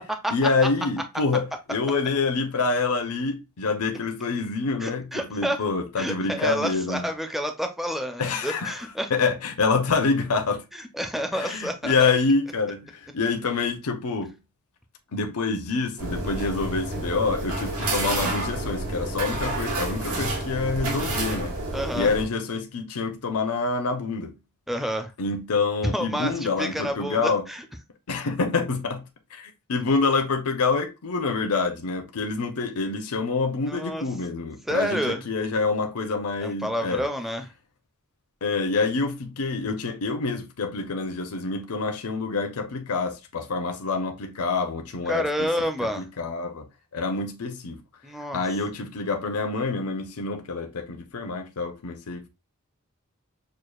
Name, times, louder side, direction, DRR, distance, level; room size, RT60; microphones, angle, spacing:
voice 1, 0.3-7.1 8.2-8.7 9.1-10.6 11.3-14.3 15.1-21.6 21.9-24.3 25.2-27.4 28.1-29.0 29.3-37.0 38.4-45.5 45.8-46.7 46.9-47.8 48.3-52.3, left 4 dB, 85° left, 0.7 m, -26 dB
voice 2, 4.8-5.6 6.0-9.1 10.7-12.1 21.7-22.1 24.7-25.1 25.9-27.6 33.7-34.0 34.7-35.2 36.4-37.4 45.1-46.0 48.0-48.4, equal, ahead, 0.4 m, -29 dB
sound 1, 16.0-22.2, right 2 dB, 80° right, 1.3 m, -29 dB
6.4 x 2.4 x 2.3 m
head